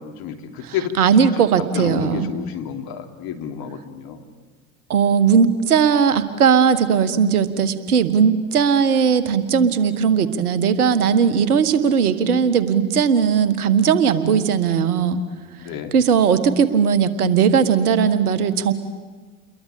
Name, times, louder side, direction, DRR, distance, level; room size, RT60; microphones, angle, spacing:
voice 1, 0.0-1.0 1.4-1.5 1.7-4.2 15.6-15.9, left 9 dB, 55° left, 6 dB, 3.1 m, -30 dB
voice 2, 0.6-2.3 4.9-15.2 15.9-18.7, right 7 dB, 80° right, 12 dB, 1.8 m, -18 dB
29.5 x 22.0 x 8.5 m, 1.4 s
hypercardioid pair, 75°, 44 cm